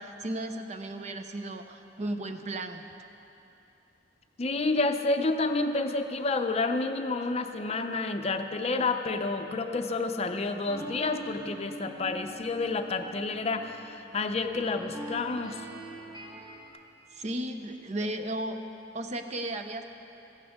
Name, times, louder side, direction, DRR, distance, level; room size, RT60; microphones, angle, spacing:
voice 1, 0.0-2.9 17.1-18.6 18.9-19.8, right 1 dB, 40° right, 7 dB, 0.6 m, -35 dB
voice 2, 4.4-15.6, left 3 dB, 35° left, 6 dB, 0.6 m, -29 dB
sound 1, 10.7-16.7, right 1 dB, 25° right, 2.0 m, -43 dB
15.5 x 14.5 x 3.6 m, 2.9 s
head